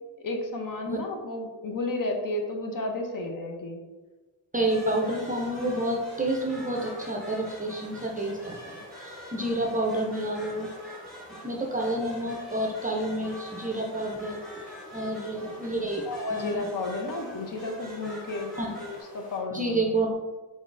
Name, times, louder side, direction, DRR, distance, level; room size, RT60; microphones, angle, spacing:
voice 1, 0.2-3.8 15.8-20.0, left 2 dB, 45° left, 3 dB, 0.6 m, -33 dB
voice 2, 4.5-10.7 11.3-14.4 14.9-16.0 16.3-16.7 18.6-18.7 19.5-20.1, right 1 dB, 20° right, 0 dB, 0.5 m, -29 dB
sound 1, 4.6-19.4, equal, 20° left, 1.3 m, -48 dB
sound 2, 4.7-19.0, equal, ahead, 1.0 m, -46 dB
3.9 x 3.5 x 2.5 m, 1.3 s
cardioid pair, 90°, 44 cm